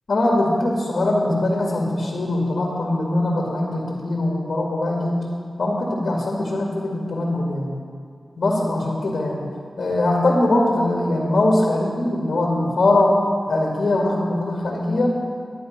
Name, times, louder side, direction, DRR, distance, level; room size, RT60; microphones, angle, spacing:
voice 1, 0.1-5.3 5.6-7.8 8.4-9.5 9.8-13.2 13.5-15.1, left 2 dB, 70° left, -3 dB, 2.1 m, -21 dB
11.0 x 10.5 x 5.3 m, 2.1 s
wide cardioid pair, 85°, 0 cm